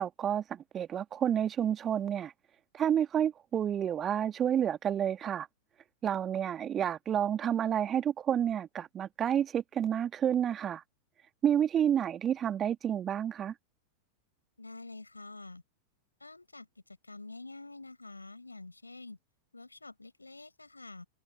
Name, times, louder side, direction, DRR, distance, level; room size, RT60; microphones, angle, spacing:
voice 1, 0.0-2.3 2.7-5.5 6.0-10.8 11.4-13.5, right 9 dB, 25° right, 2.3 m, -30 dB
voice 2, 14.6-15.6 16.2-16.7 17.1-19.2 19.5-21.1, left 2 dB, 80° left, 6.4 m, -47 dB
figure-of-eight pair, 90°, 0 cm